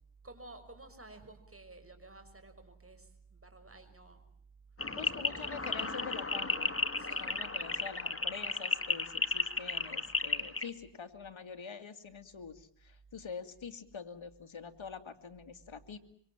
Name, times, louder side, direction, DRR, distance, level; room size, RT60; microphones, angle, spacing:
voice 1, 0.2-4.2 4.9-5.3 7.0-7.4, right 2 dB, 25° right, 8 dB, 6.3 m, -53 dB
sound 1, 4.8-10.7, left 3 dB, 25° left, 2.3 m, -34 dB
voice 2, 4.9-6.8 7.2-16.0, left 6 dB, 70° left, 7 dB, 2.5 m, -45 dB
26.0 x 25.0 x 7.4 m, 0.65 s
cardioid pair, 55°, 49 cm